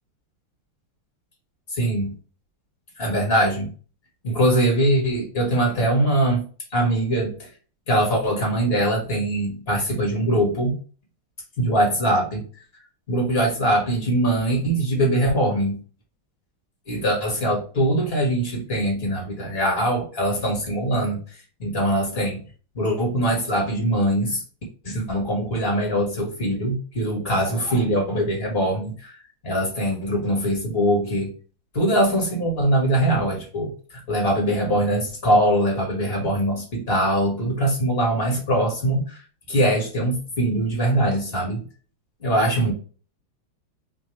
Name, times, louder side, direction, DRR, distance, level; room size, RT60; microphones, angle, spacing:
voice 1, 1.7-2.1 3.0-3.7 4.2-6.4 6.7-7.5 7.9-10.8 11.6-12.4 13.1-15.8 16.9-21.2 21.6-22.4 22.8-24.4 24.8-29.2 29.4-31.3 31.7-39.2 39.5-41.6 42.2-42.7, right 1 dB, 30° left, 0 dB, 1.7 m, -22 dB
3.6 x 3.4 x 3.1 m, 0.39 s
omnidirectional pair, 2.3 m